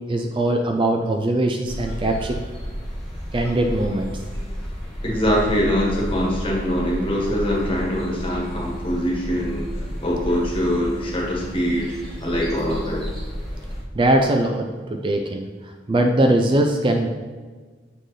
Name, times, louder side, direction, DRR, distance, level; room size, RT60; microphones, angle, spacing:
voice 1, 0.1-2.4 3.3-4.2 13.9-15.5 15.9-17.1, right 1 dB, 25° right, 4 dB, 0.4 m, -21 dB
sound 1, 1.7-13.8, equal, ahead, 1.4 m, -31 dB
voice 2, 5.0-11.9 12.2-13.0, equal, 30° left, -3 dB, 1.5 m, -23 dB
7.4 x 4.3 x 3.2 m, 1.4 s
head